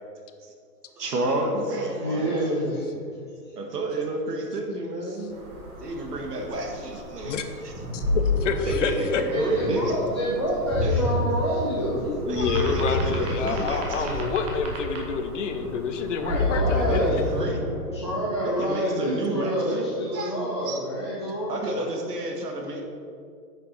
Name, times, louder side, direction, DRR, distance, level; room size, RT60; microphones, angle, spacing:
voice 1, 1.0-2.6 3.6-5.4 5.8-7.4 7.6-7.7 8.7-9.9 10.8-11.1 12.3-14.2 16.7-17.6 18.4-19.9 20.1-20.3 20.6-20.8 21.5-22.8, right 2 dB, 75° right, 2 dB, 2.0 m, -30 dB
voice 2, 2.0-3.1 9.3-12.1 16.2-17.2 17.5-21.9, equal, 20° left, -7 dB, 0.4 m, -28 dB
sound 1, 5.3-17.4, right 2 dB, 40° right, 2.0 m, -39 dB
Ocean, 7.7-18.3, left 2 dB, 10° right, 1.8 m, -29 dB
voice 3, 7.9-9.2 12.0-17.1, left 5 dB, 50° left, 7 dB, 0.9 m, -28 dB
9.6 x 6.8 x 4.4 m, 2.3 s
hypercardioid pair, 155°, 47 cm